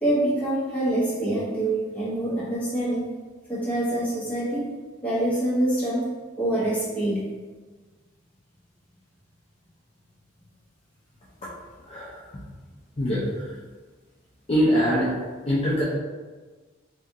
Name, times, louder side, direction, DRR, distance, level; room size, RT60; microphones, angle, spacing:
voice 1, 0.0-3.1 3.5-4.7 5.0-6.1 6.4-7.2, right 1 dB, 10° left, -9 dB, 1.0 m, -25 dB
voice 2, 11.8-12.3 13.0-13.6 14.5-15.1 15.5-15.8, equal, 30° left, -8 dB, 0.5 m, -23 dB
2.8 x 2.5 x 3.5 m, 1.3 s
head